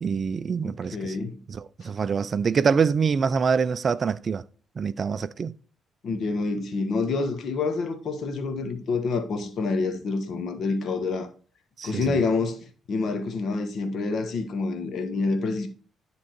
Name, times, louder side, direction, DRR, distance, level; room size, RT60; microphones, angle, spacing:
voice 1, 0.0-1.1 1.5-4.4 4.8-5.6 11.8-12.2, right 6 dB, 45° right, 0.4 m, -25 dB
voice 2, 0.6-1.4 6.0-11.3 11.8-15.7, left 3 dB, 60° left, 1.3 m, -27 dB
10.0 x 3.7 x 4.5 m
cardioid pair, 90°, 0 cm